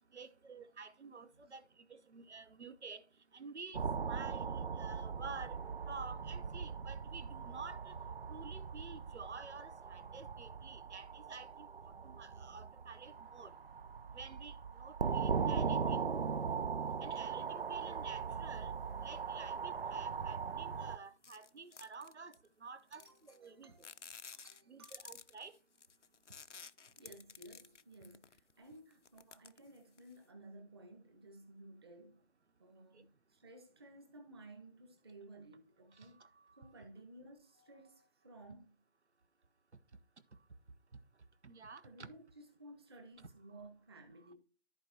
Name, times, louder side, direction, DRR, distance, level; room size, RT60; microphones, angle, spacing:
voice 1, 0.1-3.0 3.3-5.6 5.9-7.9 8.3-13.6 14.1-16.0 17.0-18.7 19.0-23.9 24.7-25.6 32.9-33.0 35.9-36.7 41.4-42.1 43.2-43.3 44.2-44.3, right 4 dB, 75° right, 1.1 m, -51 dB
sound 1, 3.7-21.0, right 6 dB, 55° right, 0.5 m, -39 dB
sound 2, 21.2-22.5 22.9-23.5 23.8-28.5 28.9-30.2, left 6 dB, 85° left, 0.7 m, -53 dB
voice 2, 22.9-24.0 24.3-25.0 27.0-32.2 32.6-36.3 36.6-38.9 41.8-44.3, right 1 dB, 20° right, 1.4 m, -56 dB
14.0 x 4.8 x 2.9 m
figure-of-eight pair, 160°, 35 cm